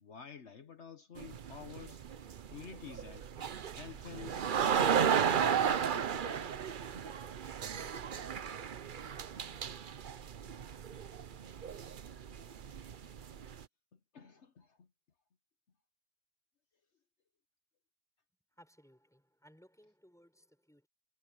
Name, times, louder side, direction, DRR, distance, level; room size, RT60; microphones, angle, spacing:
voice 1, 0.0-2.0 2.5-3.3 3.6-5.3 5.6-6.5 11.7-11.8 13.9-14.9, left 7 dB, 60° left, 1.4 m, -50 dB
sound 1, 1.2-13.6, right 8 dB, 50° right, 0.8 m, -34 dB
voice 2, 18.6-20.9, equal, ahead, 6.4 m, -62 dB
omnidirectional pair, 1.3 m